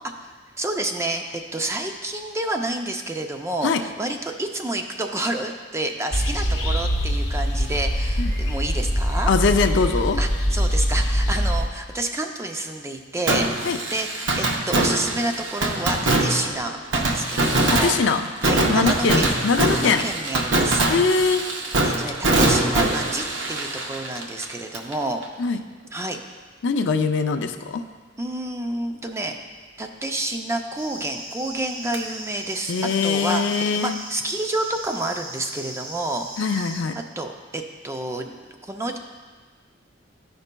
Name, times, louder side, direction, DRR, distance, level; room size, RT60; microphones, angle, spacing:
voice 1, 0.6-9.3 10.2-17.9 18.4-19.3 19.6-20.8 21.8-25.2 25.9-26.2 28.2-29.4 29.8-32.7 33.0-33.5 33.7-36.3 37.2-38.3 38.6-39.0, right 2 dB, 15° right, 4 dB, 0.4 m, -29 dB
sound 1, 6.1-11.7, equal, 35° left, 1.0 m, -23 dB
voice 2, 9.3-10.2 13.6-13.8 17.7-18.3 18.7-20.0 20.9-21.4 25.4-25.6 26.6-27.8 32.7-34.0 36.4-36.9, left 4 dB, 70° left, 7 dB, 0.4 m, -22 dB
Fireworks, 13.3-24.9 25.2-25.3 31.9-32.0, right 2 dB, 70° right, 0.8 m, -23 dB
sound 2, 30.8-36.8, right 1 dB, 90° right, 1.7 m, -38 dB
13.0 x 5.3 x 2.2 m, 1.4 s
head